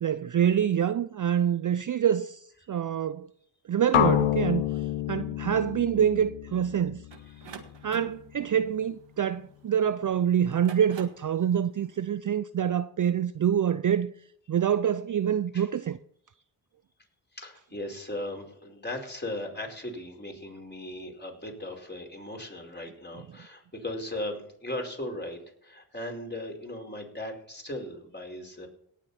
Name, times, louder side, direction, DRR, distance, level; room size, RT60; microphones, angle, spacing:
voice 1, 0.0-3.3 3.7-4.6 5.1-7.0 7.8-14.1 14.5-16.0, right 9 dB, 40° right, 0.5 m, -26 dB
sound 1, 3.9-7.9, left 12 dB, 90° left, 0.9 m, -28 dB
sound 2, 7.1-9.8 10.4-11.3, right 6 dB, 60° right, 1.8 m, -46 dB
voice 2, 7.3-7.6 15.5-15.7 17.3-28.7, left 1 dB, 20° left, 4.8 m, -38 dB
18.5 x 7.5 x 4.3 m
supercardioid pair, 45°, 49 cm